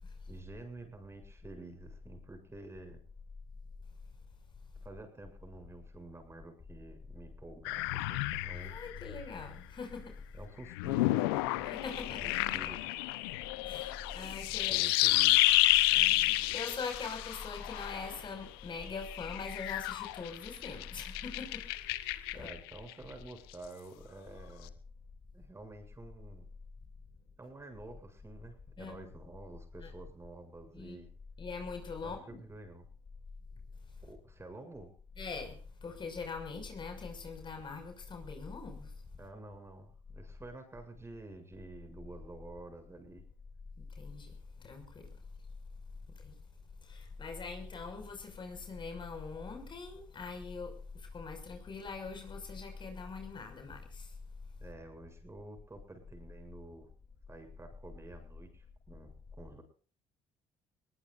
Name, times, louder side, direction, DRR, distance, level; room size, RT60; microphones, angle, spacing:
voice 1, 0.3-3.0 4.8-8.8 10.3-11.7 12.1-13.0 14.7-15.4 22.3-24.7 25.3-26.5 27.4-31.1 32.0-32.8 34.0-34.9 39.2-43.2 54.6-56.9 57.3-59.6, right 2 dB, 20° right, 6 dB, 7.9 m, -50 dB
sound 1, 7.6-9.5 10.7-18.2 18.8-22.7, left 18 dB, 90° left, 0.9 m, -30 dB
voice 2, 8.5-10.1 11.6-12.3 13.6-14.8 15.9-21.6 22.4-22.5 28.8-29.1 29.8-29.9 30.7-30.9 31.4-32.4 35.2-35.6 35.8-38.9 44.0-44.3 44.6-45.1 46.2-46.3 46.9-50.7 51.1-54.1, left 4 dB, 40° left, 5 dB, 6.2 m, -42 dB
22.0 x 20.0 x 2.6 m, 0.41 s
hypercardioid pair, 65°, 12 cm